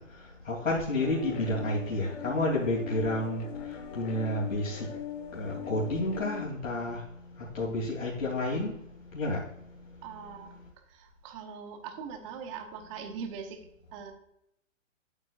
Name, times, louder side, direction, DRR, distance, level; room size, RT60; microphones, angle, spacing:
voice 1, 0.5-3.4 3.9-4.9 5.3-7.0 7.5-8.7 9.1-9.4, left 1 dB, 90° left, -5 dB, 3.0 m, -30 dB
sound 1, 1.0-6.4, left 8 dB, 50° left, 1.4 m, -41 dB
voice 2, 10.0-14.1, right 6 dB, 25° right, 5 dB, 1.0 m, -42 dB
11.0 x 8.9 x 2.5 m, 0.78 s
hypercardioid pair, 150°, 39 cm